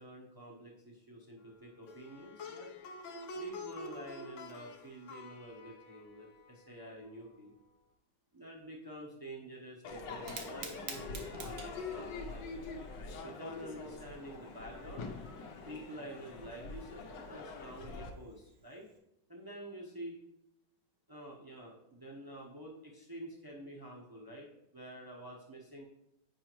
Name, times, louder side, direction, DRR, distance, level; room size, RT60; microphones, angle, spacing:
voice 1, 0.0-2.7 3.3-7.5 8.3-12.5 13.2-15.1 15.7-18.9 19.3-20.2 21.1-25.8, right 1 dB, 30° right, -3 dB, 0.4 m, -48 dB
Plucked string instrument, 1.8-7.1, left 2 dB, 65° left, 0.7 m, -47 dB
Crowd / Fireworks, 9.8-18.1, left 4 dB, 85° left, 1.4 m, -44 dB
Fire, 10.1-19.0, right 5 dB, 70° right, 1.3 m, -52 dB
7.6 x 4.9 x 3.0 m, 0.80 s
omnidirectional pair, 1.9 m